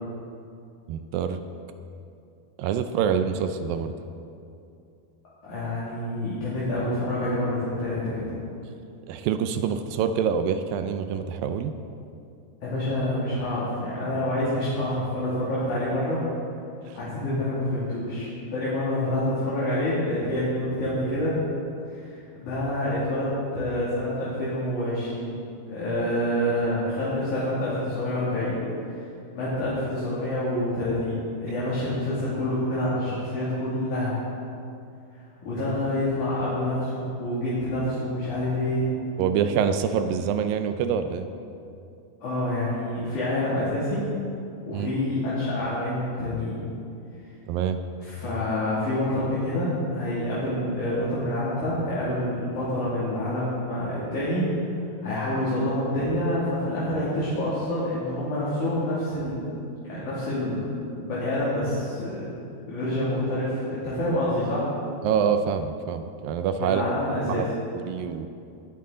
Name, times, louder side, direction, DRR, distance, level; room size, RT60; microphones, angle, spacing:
voice 1, 0.9-1.4 2.6-3.9 9.1-11.7 16.9-17.0 39.2-41.3 44.7-44.9 47.5-47.8 65.0-66.8 67.3-67.5 67.7-68.3, right 7 dB, 80° right, 9 dB, 2.2 m, -26 dB
voice 2, 5.4-8.3 12.6-16.2 16.9-21.4 21.9-25.3 25.7-28.6 29.0-29.1 29.3-34.2 35.4-38.9 42.2-44.0 44.7-46.6 48.0-54.6 55.0-59.4 59.8-62.2 62.7-64.7 66.6-67.4, left 1 dB, 55° left, -9 dB, 3.7 m, -27 dB
19.0 x 10.0 x 3.9 m, 2.5 s
omnidirectional pair, 4.5 m